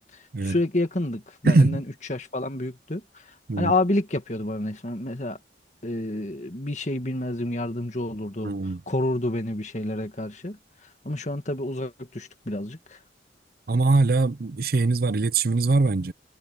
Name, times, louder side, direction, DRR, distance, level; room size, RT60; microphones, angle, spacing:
voice 1, 0.1-1.8 2.1-5.4 5.8-8.5 8.9-10.6 11.0-13.0, left 1 dB, 40° left, 1.9 m, -29 dB
voice 2, 1.4-1.8 3.5-3.7 8.4-8.8 13.7-16.1, right 3 dB, 55° right, 0.6 m, -22 dB
head